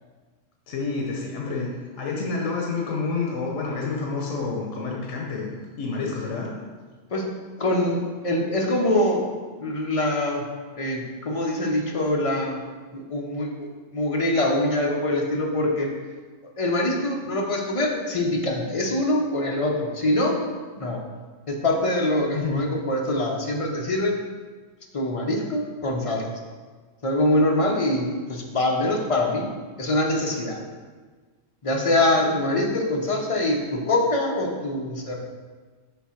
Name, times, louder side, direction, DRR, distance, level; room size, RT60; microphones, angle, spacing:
voice 1, 0.7-1.7 2.0-5.5 5.8-6.5 22.3-22.6 32.2-32.3, left 4 dB, 85° left, -1 dB, 1.2 m, -28 dB
voice 2, 7.6-9.2 9.5-10.5 10.8-12.6 12.9-15.9 16.6-20.4 20.8-21.0 21.5-24.2 24.9-26.3 27.0-29.5 29.8-30.6 31.6-35.2, left 1 dB, 35° left, 0 dB, 0.6 m, -24 dB
6.8 x 2.8 x 5.7 m, 1.4 s
omnidirectional pair, 1.3 m